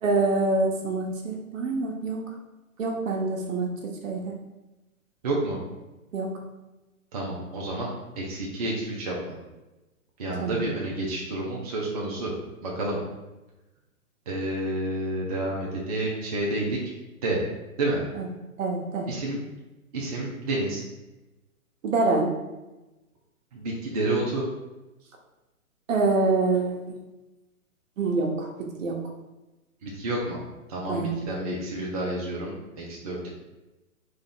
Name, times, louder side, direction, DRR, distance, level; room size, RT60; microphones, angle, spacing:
voice 1, 0.0-2.2 2.8-3.7 4.0-4.3 6.1-6.3 10.4-10.7 18.2-18.3 18.6-19.1 21.8-22.3 25.9-26.8 28.0-28.5 28.8-29.0 30.9-31.1, right 3 dB, 60° right, 1 dB, 1.0 m, -25 dB
voice 2, 5.2-5.6 7.1-7.9 8.2-9.4 10.2-12.3 12.6-13.0 14.3-16.8 17.2-17.4 17.8-18.0 19.1-19.4 19.9-20.8 23.5-24.5 29.8-30.4 30.7-33.3, right 2 dB, 30° right, -4 dB, 0.5 m, -29 dB
3.6 x 2.4 x 3.8 m, 1.0 s
hypercardioid pair, 145°, 44 cm